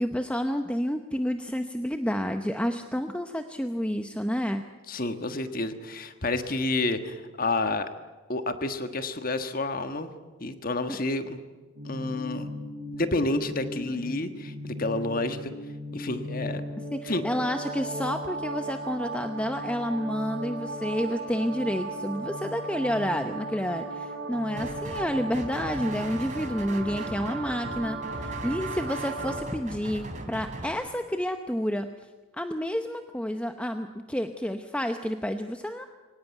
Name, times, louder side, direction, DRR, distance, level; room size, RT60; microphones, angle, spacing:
voice 1, 0.0-4.6 10.9-11.0 16.9-31.9 32.4-35.8, equal, 5° left, 6 dB, 0.8 m, -30 dB
voice 2, 4.9-7.9 8.3-10.1 10.4-11.4 11.8-12.5 12.9-15.5 15.9-16.6 17.1-17.2, left 2 dB, 45° left, 9 dB, 1.5 m, -29 dB
sound 1, 11.7-29.4, right 2 dB, 60° right, 4.4 m, -36 dB
sound 2, 24.6-25.1 25.3-30.7, right 1 dB, 35° right, 3.4 m, -39 dB
24.0 x 18.0 x 9.2 m, 1.3 s
head